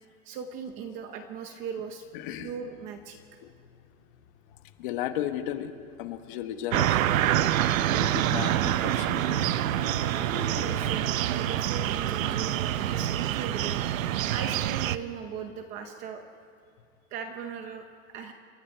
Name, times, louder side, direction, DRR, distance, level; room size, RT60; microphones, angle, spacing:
voice 1, 0.2-2.0 2.4-3.2 10.3-13.8 14.3-16.2 17.1-18.3, right 6 dB, 20° right, 6 dB, 0.7 m, -38 dB
Motorcycle, 1.8-14.3, left 9 dB, 70° left, 1.8 m, -49 dB
voice 2, 2.1-2.5 3.4-3.5 4.8-5.7 6.0-7.0 7.5-9.3, left 11 dB, 40° left, 8 dB, 1.3 m, -34 dB
sound 1, 6.7-15.0, right 12 dB, 75° right, 0.9 m, -26 dB
28.5 x 24.0 x 4.6 m, 2.1 s
supercardioid pair, 180°, 40 cm